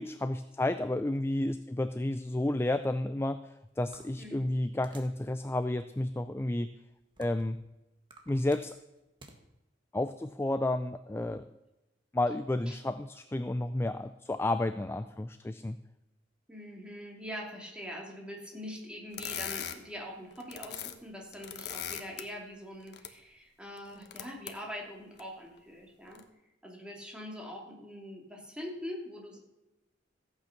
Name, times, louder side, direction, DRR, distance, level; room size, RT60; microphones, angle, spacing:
voice 1, 0.0-6.7 7.2-7.6 8.3-8.8 9.9-11.5 12.1-15.8, left 1 dB, 15° left, 11 dB, 0.4 m, -31 dB
sound 1, 3.9-5.2 5.8-5.9 6.6-7.6 8.0-9.4, right 2 dB, 25° right, 1.6 m, -54 dB
voice 2, 4.2-4.6 12.7-12.8 16.5-26.2 26.6-29.4, equal, 5° right, -1 dB, 2.7 m, -43 dB
sound 2, 19.1-19.8 20.3-20.9 21.2-22.2 22.8-23.1 23.8-24.5 25.2-25.3 26.1-26.2, left 9 dB, 60° left, 1.2 m, -39 dB
15.0 x 8.6 x 5.9 m, 0.97 s
head